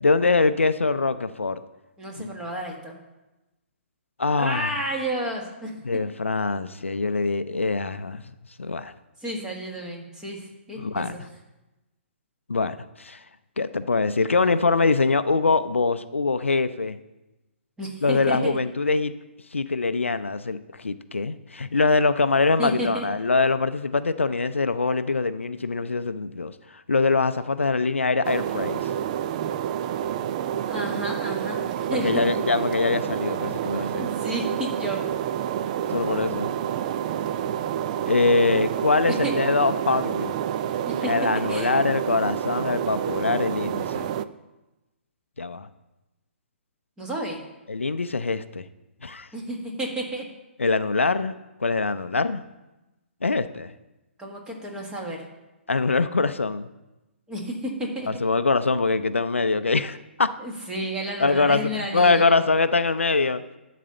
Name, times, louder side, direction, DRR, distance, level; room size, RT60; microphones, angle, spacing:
voice 1, 0.0-1.6 2.2-2.3 4.2-4.7 5.8-8.2 8.6-8.9 10.8-11.2 12.5-13.2 13.6-17.0 18.0-19.1 19.5-26.5 26.9-28.9 31.9-34.0 35.9-36.5 38.0-40.4 41.1-44.1 45.4-45.7 47.7-48.7 49.0-49.3 50.6-52.4 53.2-53.7 55.7-56.7 58.1-60.3 61.2-63.4, left 3 dB, 75° left, 12 dB, 0.5 m, -23 dB
voice 2, 2.0-2.9 4.4-5.7 9.2-11.3 17.8-18.6 22.6-23.1 30.7-32.4 34.0-35.0 39.2-39.3 40.8-41.1 41.5-41.7 47.0-47.4 49.3-50.2 54.2-55.2 57.3-58.1 60.4-62.3, right 1 dB, 10° right, 0 dB, 1.7 m, -31 dB
sound 1, 28.2-44.2, right 10 dB, 35° right, 0.4 m, -28 dB
12.0 x 4.1 x 6.8 m, 1.0 s
figure-of-eight pair, 125°, 7 cm